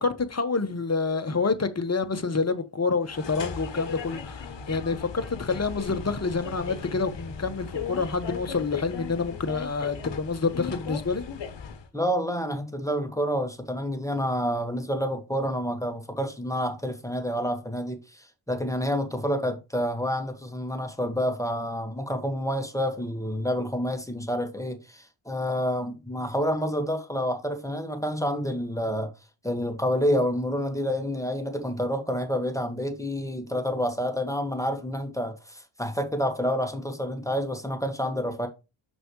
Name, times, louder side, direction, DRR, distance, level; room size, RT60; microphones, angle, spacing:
voice 1, 0.0-11.2, left 4 dB, 35° left, 1.2 m, -28 dB
sound 1, 3.0-11.9, left 6 dB, 65° left, 1.2 m, -37 dB
voice 2, 11.9-29.1 29.4-38.5, equal, 5° left, 1.7 m, -28 dB
6.4 x 6.1 x 3.1 m
cardioid pair, 60°, 47 cm